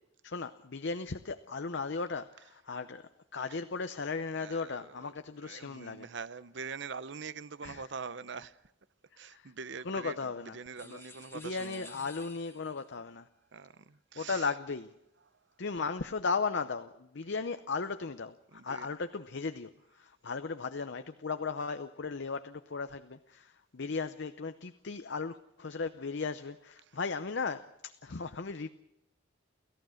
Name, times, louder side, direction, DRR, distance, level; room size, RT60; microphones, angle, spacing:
voice 1, 0.2-6.1 7.6-7.8 9.3-9.5 9.8-10.6 10.8-11.0 11.3-13.3 14.2-14.9 15.6-19.7 19.9-28.7, left 4 dB, 60° left, 0.7 m, -36 dB
voice 2, 4.2-5.1 5.4-8.6 9.2-12.1 13.5-14.5 18.5-18.9, right 5 dB, 60° right, 0.7 m, -44 dB
sound 1, 10.7-12.9, left 3 dB, 15° left, 1.2 m, -53 dB
29.5 x 14.5 x 6.4 m
head